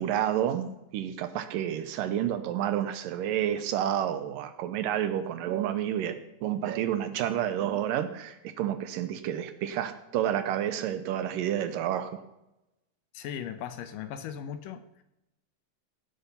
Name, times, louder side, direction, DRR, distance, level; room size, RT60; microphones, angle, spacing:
voice 1, 0.0-12.2, right 10 dB, 80° right, 11 dB, 2.2 m, -30 dB
voice 2, 13.1-15.0, left 9 dB, 75° left, 10 dB, 2.2 m, -38 dB
17.0 x 8.1 x 5.7 m, 0.91 s
omnidirectional pair, 4.2 m